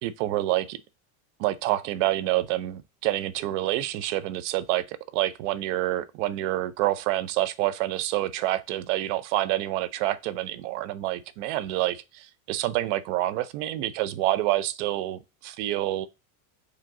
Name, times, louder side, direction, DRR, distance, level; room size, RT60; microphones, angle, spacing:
voice 1, 0.0-0.8 1.4-16.1, right 15 dB, 60° right, 0.6 m, -27 dB
4.9 x 2.9 x 3.6 m
supercardioid pair, 155°, 41 cm